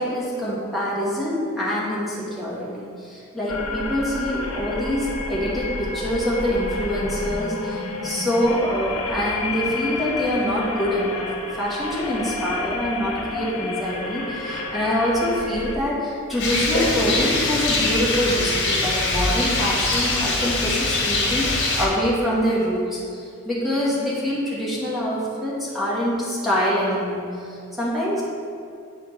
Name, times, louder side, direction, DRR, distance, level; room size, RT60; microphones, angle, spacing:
voice 1, 0.0-11.3 11.6-28.2, equal, ahead, -8 dB, 1.8 m, -25 dB
sound 1, 3.5-15.7, left 3 dB, 85° left, 0.9 m, -30 dB
Rain, 16.4-21.9, left 2 dB, 55° left, 1.4 m, -22 dB
8.1 x 5.0 x 4.5 m, 2.5 s
head